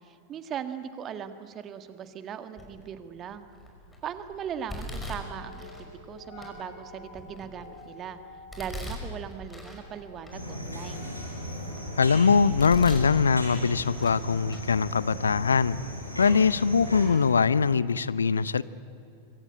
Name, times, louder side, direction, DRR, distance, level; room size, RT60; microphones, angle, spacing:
voice 1, 0.0-3.5 4.0-8.2 8.6-11.1, right 8 dB, 30° right, 10 dB, 1.8 m, -39 dB
Domestic sounds home sounds, 2.6-3.0 3.5-4.0 4.7-5.9 6.4-6.5 7.1-7.9 8.5-9.8 10.2-10.3 10.9-11.9 12.3-13.1 13.5-14.2 14.5-14.6 15.5-15.6 16.2-16.3 16.7-16.8, left 1 dB, 10° left, 5.6 m, -40 dB
sound 1, 3.0-16.4, left 2 dB, 50° left, 7.9 m, -51 dB
sound 2, 10.3-17.1, equal, 90° left, 5.4 m, -37 dB
voice 2, 12.0-15.8 16.2-18.6, left 5 dB, 70° left, 19 dB, 0.6 m, -22 dB
25.5 x 24.5 x 8.6 m, 2.6 s
figure-of-eight pair, 90°, 0 cm